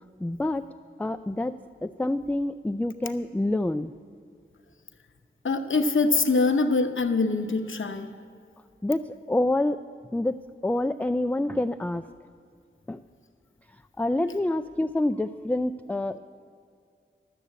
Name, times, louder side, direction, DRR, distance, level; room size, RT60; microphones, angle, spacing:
voice 1, 0.2-0.7 1.0-1.6 1.8-3.9 8.8-9.8 10.1-10.4 10.6-12.1 12.9-13.0 14.0-16.2, left 1 dB, 5° left, 9 dB, 0.3 m, -27 dB
voice 2, 5.4-8.1, left 3 dB, 70° left, 7 dB, 0.9 m, -24 dB
12.5 x 6.9 x 8.1 m, 2.3 s
cardioid pair, 40°, 21 cm